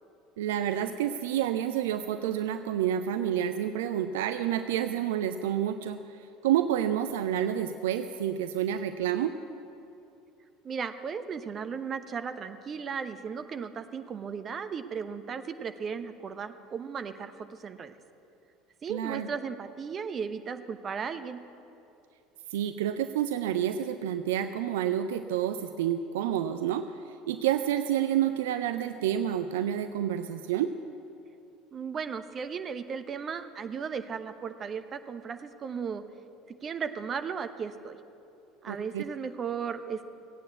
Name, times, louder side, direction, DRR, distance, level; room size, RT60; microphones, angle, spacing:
voice 1, 0.4-6.0 6.4-9.3 18.9-19.3 22.5-26.9 27.3-30.7 38.7-39.0, right 10 dB, 65° right, 9 dB, 0.5 m, -29 dB
voice 2, 10.6-17.9 18.8-21.4 31.7-36.0 36.5-38.0 38.6-40.0, right 6 dB, 35° right, 10 dB, 0.9 m, -36 dB
16.5 x 9.0 x 8.1 m, 2.7 s
figure-of-eight pair, 65°, 0 cm